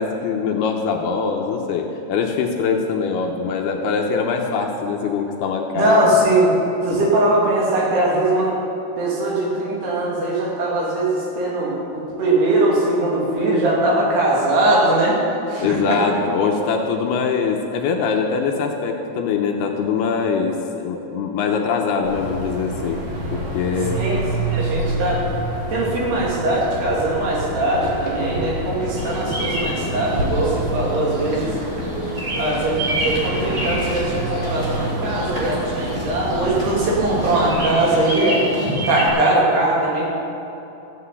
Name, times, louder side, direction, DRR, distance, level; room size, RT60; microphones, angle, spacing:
voice 1, 0.0-6.1 6.9-7.0 15.6-23.0 23.3-24.0, left 5 dB, 75° left, 2 dB, 2.7 m, -23 dB
voice 2, 5.7-6.5 6.8-8.6 9.0-15.2 15.5-16.0 23.9-25.2 25.7-31.5 32.3-32.8 33.0-38.4 38.9-40.1, right 1 dB, 65° right, -4 dB, 4.5 m, -20 dB
sound 1, 22.0-37.7, right 1 dB, 50° right, 2.0 m, -28 dB
Bird vocalization bird call bird song, 29.0-39.1, equal, 20° right, 3.1 m, -28 dB
14.5 x 8.0 x 8.3 m, 3.0 s
omnidirectional pair, 5.1 m